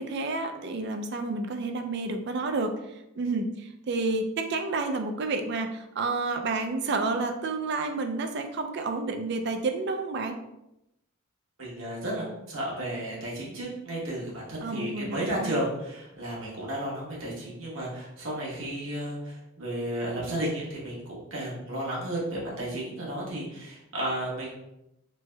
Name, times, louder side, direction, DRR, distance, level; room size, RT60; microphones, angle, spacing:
voice 1, 0.0-2.7 3.2-10.4 14.6-15.6, right 3 dB, 55° right, 6 dB, 0.3 m, -30 dB
voice 2, 11.6-24.5, right 1 dB, 75° right, -5 dB, 1.1 m, -33 dB
3.2 x 2.1 x 3.2 m, 0.87 s
head